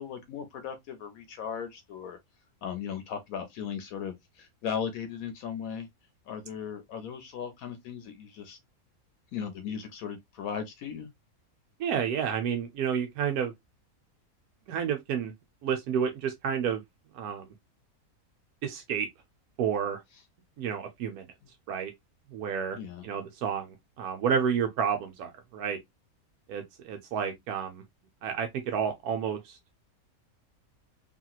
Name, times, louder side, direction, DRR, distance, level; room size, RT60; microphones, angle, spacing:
voice 1, 0.0-2.2 2.6-5.9 6.3-8.6 9.3-11.1 22.8-23.0, left 7 dB, 75° left, 1.0 m, -37 dB
voice 2, 11.8-13.5 14.7-15.3 15.6-16.8 17.1-17.5 18.6-19.1 19.6-20.0 20.6-21.3 21.7-21.9 22.3-22.8 23.0-25.8 26.5-27.8 28.2-29.6, right 7 dB, 90° right, 1.2 m, -30 dB
2.9 x 2.9 x 2.2 m
omnidirectional pair, 1.6 m